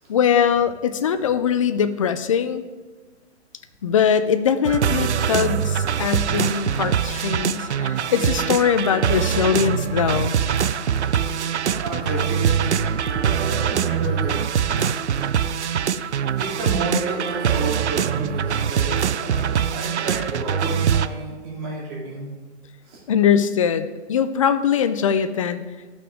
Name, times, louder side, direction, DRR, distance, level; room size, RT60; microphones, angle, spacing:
voice 1, 0.1-2.6 3.8-10.4 23.1-25.6, left 8 dB, 30° left, 11 dB, 0.4 m, -21 dB
sound 1, 4.6-21.1, right 8 dB, 75° right, 0.5 m, -23 dB
sound 2, 6.3-13.5, left 2 dB, 5° left, 2.7 m, -44 dB
sound 3, 7.9-19.8, right 3 dB, 55° right, 2.6 m, -41 dB
voice 2, 11.7-14.4 16.4-22.4 22.8-23.0, right 2 dB, 35° right, -4 dB, 3.0 m, -31 dB
13.5 x 6.0 x 3.6 m, 1.3 s
figure-of-eight pair, 130°, 34 cm